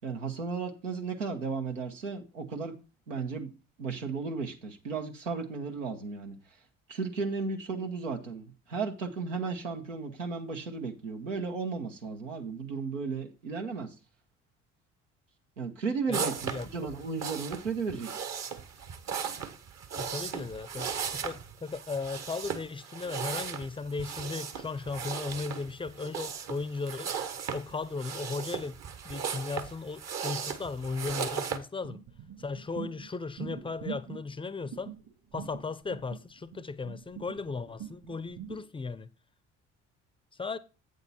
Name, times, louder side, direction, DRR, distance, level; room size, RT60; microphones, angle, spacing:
voice 1, 0.0-2.7 3.1-3.5 3.8-6.4 6.9-13.9 15.6-18.1, right 4 dB, 85° right, 1.1 m, -34 dB
voice 2, 16.1-16.9 20.0-27.1 27.5-28.8 29.0-32.0 32.4-35.0 35.3-39.1 40.4-40.6, left 4 dB, 15° left, 0.6 m, -36 dB
sound 1, 16.1-31.6, right 7 dB, 45° right, 1.2 m, -37 dB
sound 2, 31.8-38.6, right 9 dB, 60° right, 3.2 m, -43 dB
8.4 x 6.5 x 4.2 m
figure-of-eight pair, 50°, 37 cm